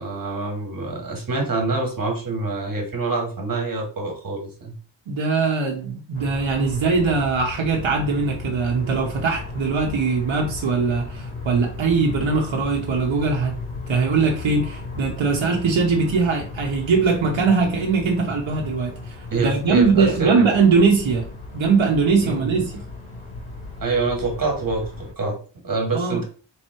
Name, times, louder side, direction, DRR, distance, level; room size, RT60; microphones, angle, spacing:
voice 1, 0.0-4.8 19.3-20.4 22.2-22.6 23.8-26.2, right 3 dB, 45° right, 1.6 m, -26 dB
voice 2, 5.1-13.6 13.9-21.3 21.5-22.8 25.9-26.2, right 4 dB, 80° right, 1.0 m, -21 dB
sound 1, 6.1-25.1, left 3 dB, 85° left, 1.8 m, -35 dB
3.6 x 3.0 x 4.5 m
wide cardioid pair, 160°, 46 cm